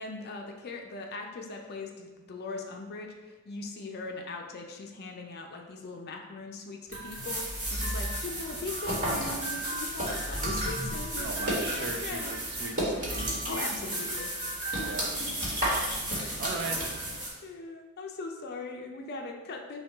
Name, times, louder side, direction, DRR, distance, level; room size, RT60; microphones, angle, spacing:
voice 1, 0.0-12.3 13.5-14.3 14.6-15.6 16.1-16.4 17.4-19.8, left 3 dB, 45° left, 2 dB, 0.5 m, -40 dB
sound 1, 6.9-17.3, right 1 dB, 40° right, 1.3 m, -32 dB
voice 2, 11.2-13.3 14.8-15.1 16.4-16.8, right 4 dB, 55° right, 4 dB, 0.5 m, -38 dB
5.7 x 2.3 x 3.4 m, 1.2 s
head